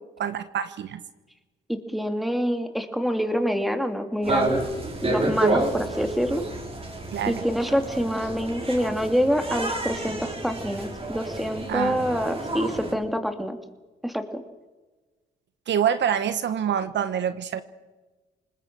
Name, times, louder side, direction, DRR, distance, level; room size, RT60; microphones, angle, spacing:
voice 1, 0.2-1.0 7.1-7.4 11.7-12.0 15.7-17.6, right 9 dB, 65° right, 12 dB, 1.3 m, -26 dB
voice 2, 1.7-4.6 5.0-6.4 7.3-13.6 14.0-14.4, equal, ahead, 7 dB, 2.8 m, -26 dB
sound 1, 4.2-12.9, right 2 dB, 30° right, 5.5 m, -29 dB
26.0 x 20.5 x 6.3 m, 1.2 s
cardioid pair, 90°, 20 cm